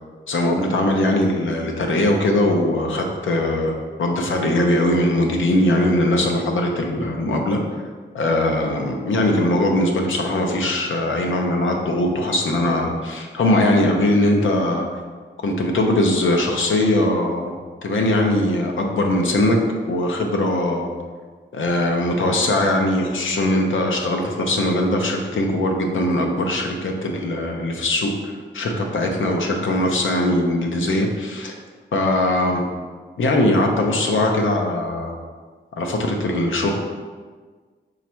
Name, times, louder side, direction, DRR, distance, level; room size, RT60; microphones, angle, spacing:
voice 1, 0.3-7.6 8.1-14.9 15.4-17.5 17.8-19.6 19.9-20.9 21.5-31.5 31.9-32.6 33.2-35.1 35.8-36.7, left 1 dB, 90° left, 2 dB, 0.7 m, -20 dB
5.1 x 2.4 x 4.3 m, 1.5 s
wide cardioid pair, 140°, 20 cm